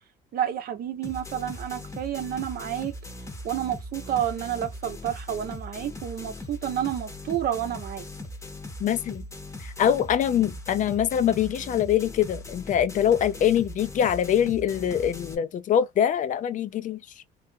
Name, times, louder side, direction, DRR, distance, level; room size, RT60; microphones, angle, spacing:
voice 1, 0.3-3.0 3.4-8.0, right 10 dB, 60° right, 0.8 m, -30 dB
sound 1, 1.0-15.3, left 1 dB, 15° left, 0.8 m, -40 dB
voice 2, 8.8-9.2 9.6-17.0, left 9 dB, 50° left, 0.4 m, -24 dB
3.3 x 2.4 x 2.7 m
cardioid pair, 110°, 17 cm